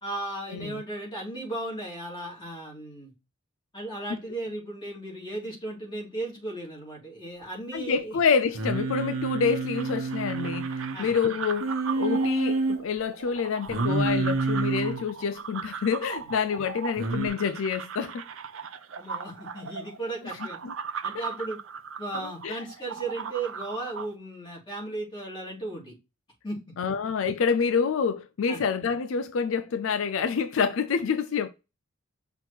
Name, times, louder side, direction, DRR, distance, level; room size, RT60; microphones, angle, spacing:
voice 1, 0.0-3.1 3.7-8.2 10.9-11.1 19.0-20.6 21.0-21.6 22.0-25.9 26.4-26.6 28.5-28.6, right 2 dB, 25° left, 3.3 m, -35 dB
voice 2, 7.7-10.7 11.0-18.2 20.6-20.7 21.1-21.2 22.2-22.6 26.8-31.5, left 6 dB, 70° left, 0.4 m, -27 dB
Singing, 8.5-11.0 11.6-12.8 13.7-15.0 17.0-17.3, right 3 dB, 85° right, 1.1 m, -28 dB
sound 1, 9.7-24.1, right 6 dB, 70° right, 0.6 m, -38 dB
6.0 x 3.6 x 4.4 m
head